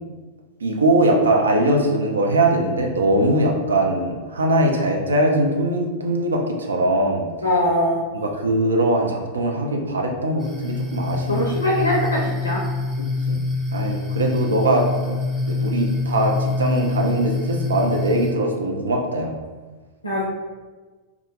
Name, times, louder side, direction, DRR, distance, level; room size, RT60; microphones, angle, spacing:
voice 1, 0.6-7.2 8.1-11.5 13.0-13.4 13.7-15.2 15.4-19.3, right 1 dB, 70° right, 1 dB, 0.4 m, -21 dB
voice 2, 7.4-8.0 11.3-12.6 20.0-20.2, left 1 dB, 80° left, -3 dB, 0.4 m, -21 dB
sound 1, 10.4-18.3, left 3 dB, 20° right, 0.6 m, -25 dB
2.4 x 2.3 x 3.2 m, 1.3 s
figure-of-eight pair, 90°, 0 cm